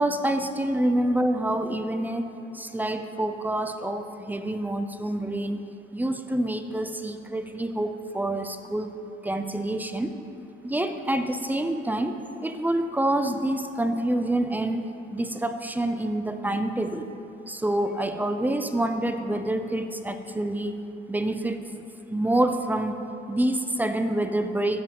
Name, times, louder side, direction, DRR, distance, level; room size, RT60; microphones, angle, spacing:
voice 1, 0.0-2.3 2.5-5.6 5.9-8.9 9.2-10.1 10.6-17.1 17.5-20.7 21.1-21.6 22.1-23.0 23.3-24.8, right 1 dB, 10° right, 8 dB, 0.5 m, -27 dB
13.0 x 5.1 x 3.6 m, 2.9 s
cardioid pair, 90°, 20 cm